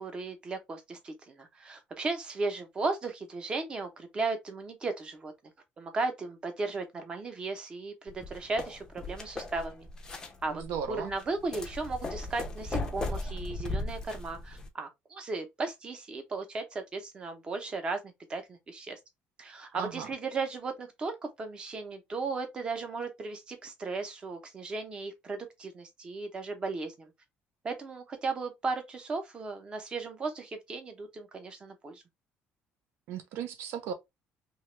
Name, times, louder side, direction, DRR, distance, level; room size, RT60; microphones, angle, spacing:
voice 1, 0.0-5.3 5.8-9.9 10.4-10.6 10.9-18.0 18.3-19.0 19.4-27.1 27.6-32.0, right 3 dB, 20° right, 0.6 m, -36 dB
sound 1, 8.1-14.7, left 2 dB, 15° left, 0.5 m, -37 dB
voice 2, 10.5-11.1 19.7-20.1 33.1-33.9, right 8 dB, 80° right, 0.7 m, -36 dB
2.9 x 2.3 x 3.1 m
cardioid pair, 175°, 4 cm